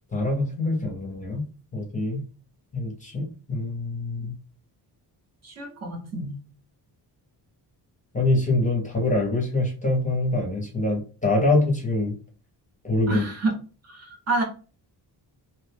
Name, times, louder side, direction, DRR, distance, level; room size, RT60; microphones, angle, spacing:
voice 1, 0.1-1.4 1.7-2.2 2.7-4.3 8.1-12.1 12.8-13.2, left 2 dB, 20° left, -1 dB, 0.6 m, -24 dB
voice 2, 5.4-6.4 13.1-13.5 13.9-14.4, right 2 dB, 40° right, 1 dB, 0.7 m, -28 dB
2.6 x 2.2 x 3.3 m, 0.37 s
wide cardioid pair, 155°, 42 cm